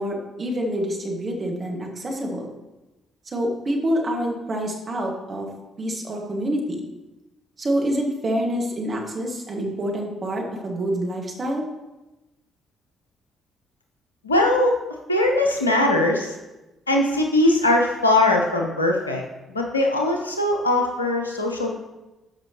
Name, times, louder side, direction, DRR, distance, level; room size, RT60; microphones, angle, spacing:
voice 1, 0.0-2.5 3.3-5.5 5.8-6.9 7.6-11.7, equal, 40° right, 0 dB, 1.9 m, -27 dB
voice 2, 14.2-14.7 15.1-16.3 16.9-19.2 19.5-21.7, left 1 dB, 90° left, 2 dB, 0.7 m, -20 dB
12.5 x 5.4 x 3.0 m, 1.0 s
figure-of-eight pair, 40°, 0 cm